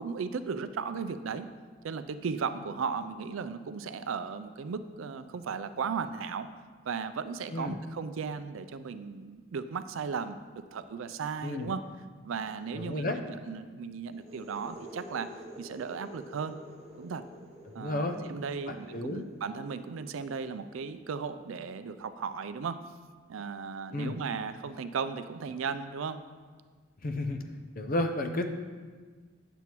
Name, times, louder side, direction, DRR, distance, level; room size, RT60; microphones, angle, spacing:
voice 1, 0.0-1.5 1.8-6.5 6.9-10.4 10.7-11.8 12.2-15.3 15.6-16.6 17.0-17.2 17.7-22.8 23.3-26.2, right 5 dB, 75° right, 11 dB, 0.4 m, -36 dB
voice 2, 12.8-13.2 17.8-18.2 18.9-19.2 23.9-24.1 27.0-27.4 27.8-28.5, left 1 dB, 45° left, 5 dB, 0.6 m, -31 dB
sound 1, 14.1-21.7, right 1 dB, 30° right, 0.8 m, -50 dB
9.3 x 6.9 x 3.0 m, 1.5 s
head